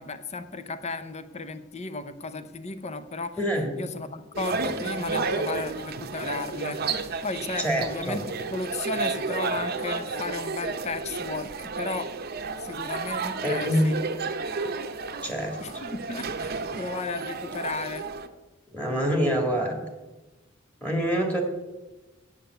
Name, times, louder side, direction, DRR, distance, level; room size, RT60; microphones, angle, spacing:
voice 1, 0.0-3.4 3.8-6.8 7.2-8.2 8.5-12.1 12.6-14.0 15.6-18.1, left 3 dB, 35° left, 11 dB, 0.6 m, -34 dB
voice 2, 3.4-3.8 7.6-8.2 13.4-13.9 15.2-15.9 18.7-19.9 20.8-21.4, equal, 5° left, 1 dB, 1.9 m, -26 dB
sound 1, 4.3-18.3, right 4 dB, 50° right, 0.8 m, -32 dB
9.0 x 7.3 x 7.9 m, 1.2 s
head